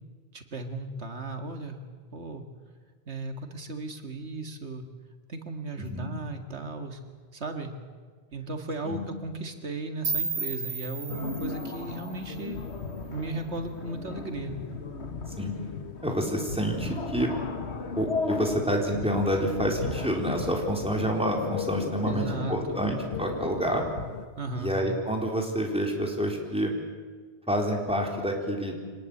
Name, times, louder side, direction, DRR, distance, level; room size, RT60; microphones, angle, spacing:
voice 1, 0.3-1.8 2.1-2.4 3.1-4.9 5.3-7.0 7.3-7.7 8.3-12.6 13.1-14.6 22.1-22.8 24.4-24.7, right 2 dB, 90° right, 6 dB, 2.3 m, -36 dB
sound 1, 10.0-13.0, right 4 dB, 65° right, 1.6 m, -34 dB
sound 2, 11.1-24.3, left 4 dB, 85° left, 1.7 m, -36 dB
voice 2, 16.0-17.3 18.0-23.8 24.6-26.7 27.5-28.8, equal, 5° right, 0 dB, 3.9 m, -28 dB
25.0 x 19.5 x 8.6 m, 1.5 s
omnidirectional pair, 1.1 m